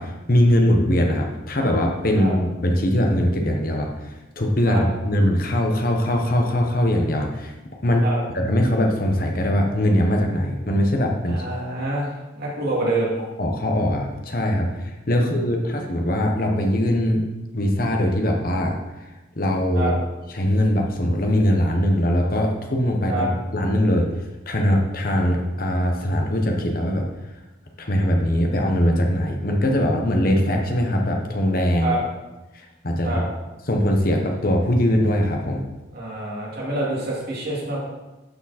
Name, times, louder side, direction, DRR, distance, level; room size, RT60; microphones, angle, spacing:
voice 1, 0.0-3.9 4.4-7.5 7.8-8.0 8.3-11.4 13.4-17.2 17.5-18.8 19.4-19.9 20.3-24.1 24.5-27.0 27.8-31.9 32.8-33.2 33.7-35.6, equal, 45° left, 2 dB, 1.1 m, -21 dB
voice 2, 11.3-13.1 19.7-19.9 23.1-23.3 31.8-32.0 33.0-33.2 35.9-37.8, right 2 dB, 50° right, -5 dB, 2.8 m, -26 dB
12.0 x 5.0 x 4.3 m, 1.1 s
head